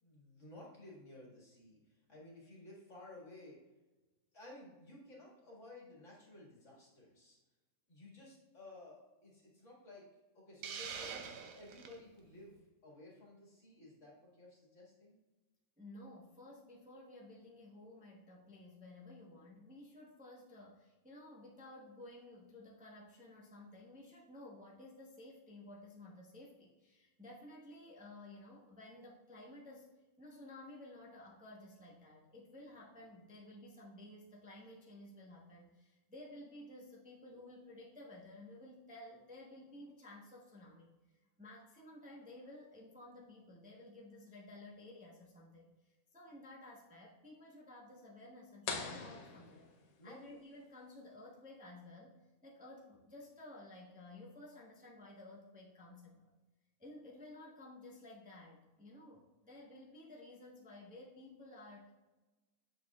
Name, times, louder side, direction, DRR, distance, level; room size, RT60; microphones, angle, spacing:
voice 1, 0.0-3.6 4.3-7.4 7.9-10.1 10.3-11.3 11.5-15.2 50.0-50.2, left 2 dB, 55° left, -4 dB, 2.1 m, -55 dB
Hiss, 10.6-12.0, right 6 dB, 70° right, 1.0 m, -44 dB
voice 2, 15.8-29.9 30.2-40.9 41.4-49.7 50.0-56.3 56.8-61.9, left 1 dB, 5° right, -4 dB, 0.7 m, -54 dB
sound 1, 48.7-50.3, left 5 dB, 70° left, 1.2 m, -43 dB
6.8 x 6.7 x 2.3 m, 1.2 s
omnidirectional pair, 1.6 m